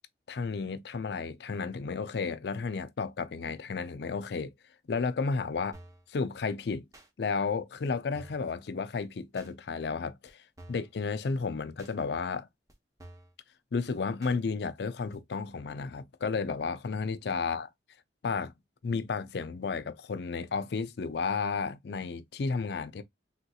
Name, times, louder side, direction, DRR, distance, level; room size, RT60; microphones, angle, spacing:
voice 1, 0.3-4.5 4.9-5.8 6.1-6.9 7.2-12.5 13.7-17.7 18.2-18.5 18.8-23.0, left 4 dB, 65° left, 0.4 m, -32 dB
sound 1, 5.7-6.1 6.9-7.1 7.8-7.9 8.1-8.5 9.4-9.5 10.3-10.4 10.6-10.9 11.8-11.9 12.7-12.8 13.0-13.3 14.2-14.4 15.1-15.2, right 1 dB, 20° right, 0.8 m, -51 dB
3.7 x 2.8 x 2.2 m
head